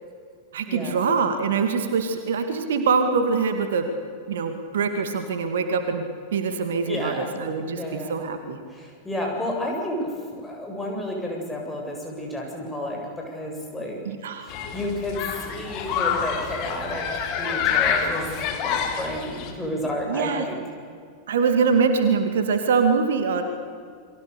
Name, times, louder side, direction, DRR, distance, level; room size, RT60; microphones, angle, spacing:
voice 1, 0.5-3.9 4.3-6.0 6.3-8.6 14.1-14.5 20.1-20.5 21.3-23.4, right 5 dB, 60° right, 7 dB, 2.3 m, -23 dB
voice 2, 6.9-7.3 7.6-8.1 8.7-14.0 14.4-17.1 17.4-18.3 18.6-20.6, left 1 dB, 10° left, 0 dB, 7.5 m, -31 dB
Human group actions, 14.5-19.5, left 7 dB, 40° left, 3.8 m, -27 dB
29.5 x 23.5 x 6.9 m, 2.2 s
figure-of-eight pair, 90°, 0 cm